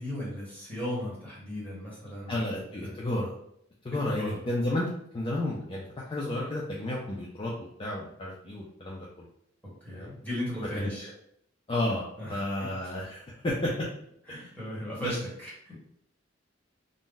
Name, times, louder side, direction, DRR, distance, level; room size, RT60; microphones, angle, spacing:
voice 1, 0.0-2.9 4.1-4.4 9.6-11.1 12.2-12.9 14.3-15.8, left 1 dB, 10° left, -7 dB, 1.2 m, -37 dB
voice 2, 2.3-3.3 3.8-4.9 5.1-7.5 7.8-9.3 9.9-10.1 10.8-11.1 11.7-12.0 12.3-13.9 14.3-14.5 15.0-15.1, left 1 dB, 25° left, -4 dB, 0.4 m, -32 dB
2.5 x 2.1 x 3.7 m, 0.72 s
head